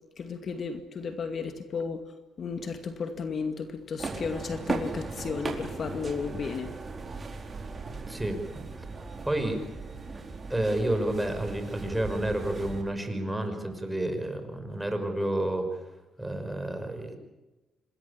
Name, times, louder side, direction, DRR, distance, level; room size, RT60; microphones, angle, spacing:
voice 1, 0.2-2.0 2.4-6.7, left 5 dB, 50° left, 7 dB, 2.3 m, -34 dB
sound 1, 4.0-12.8, right 3 dB, 35° right, 4.6 m, -37 dB
voice 2, 8.1-8.4 8.8-8.9 9.2-9.6 10.5-15.8 16.2-17.2, right 1 dB, 10° right, 6 dB, 5.8 m, -30 dB
26.5 x 21.0 x 8.7 m, 1.1 s
cardioid pair, 90°, 0 cm